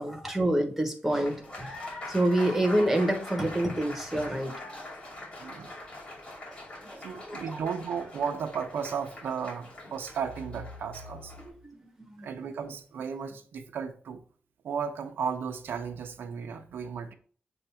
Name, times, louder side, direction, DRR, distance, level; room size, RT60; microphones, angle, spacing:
voice 1, 0.0-4.6 6.5-7.6 11.6-12.3, right 1 dB, 5° right, 1.1 m, -28 dB
Applause, 1.1-11.5, left 1 dB, 35° left, 2.6 m, -43 dB
voice 2, 5.4-5.7 7.0-11.4 12.2-14.2 14.6-17.1, right 6 dB, 85° right, 0.7 m, -34 dB
7.1 x 2.6 x 5.6 m
wide cardioid pair, 150°, 4 cm